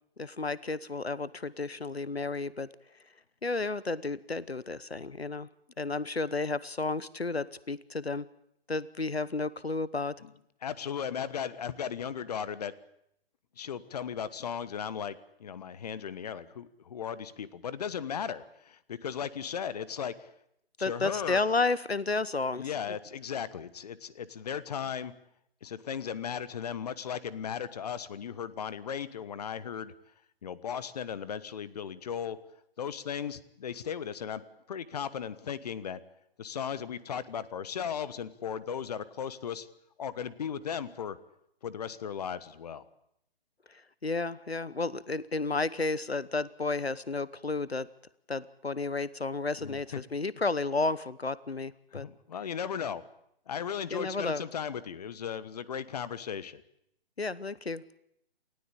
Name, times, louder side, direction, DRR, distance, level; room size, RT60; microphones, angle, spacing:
voice 1, 0.2-2.7 3.4-5.5 5.8-8.2 8.7-10.1 20.8-22.7 43.7-47.9 48.3-52.1 53.9-54.4 57.2-57.8, left 3 dB, 85° left, 19 dB, 1.0 m, -32 dB
voice 2, 10.6-12.7 13.6-20.3 20.8-21.4 22.6-25.1 25.6-29.9 30.4-32.4 32.8-34.4 34.7-36.0 36.4-39.7 40.0-41.2 41.6-42.8 49.6-50.0 51.9-53.0 53.5-56.6, left 8 dB, 40° left, 17 dB, 1.3 m, -36 dB
28.5 x 16.5 x 8.7 m, 0.76 s
figure-of-eight pair, 135°, 30 cm